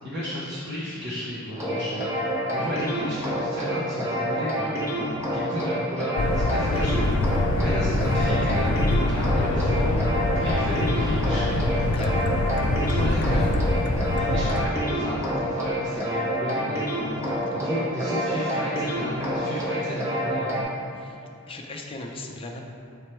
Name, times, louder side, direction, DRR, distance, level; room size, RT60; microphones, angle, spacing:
voice 1, 0.0-2.0 2.5-4.7 5.3-10.0 10.3-11.7 12.8-13.6 14.0-16.9 17.5-20.5, left 1 dB, 55° right, -9 dB, 1.0 m, -33 dB
sound 1, 1.5-20.6, equal, 15° right, 0.9 m, -28 dB
sound 2, 6.2-14.7, left 2 dB, 85° left, 0.4 m, -24 dB
Acoustic guitar / Strum, 8.0-12.0, equal, 75° right, 1.2 m, -44 dB
voice 2, 11.9-12.3 17.3-17.4 21.0-21.2 21.5-22.6, left 2 dB, 25° left, 1 dB, 0.5 m, -37 dB
7.4 x 3.2 x 4.4 m, 2.6 s
head